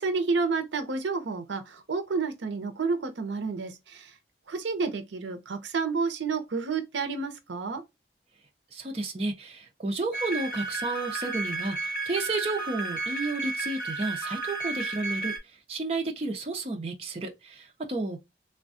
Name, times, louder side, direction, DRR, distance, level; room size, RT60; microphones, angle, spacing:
voice 1, 0.0-4.1 4.5-7.8, right 4 dB, 75° right, 0.6 m, -30 dB
voice 2, 8.7-15.3 15.7-18.2, right 2 dB, 30° right, 0.6 m, -32 dB
sound 1, 10.1-15.4, right 3 dB, 50° left, 1.4 m, -33 dB
3.4 x 2.2 x 2.5 m
head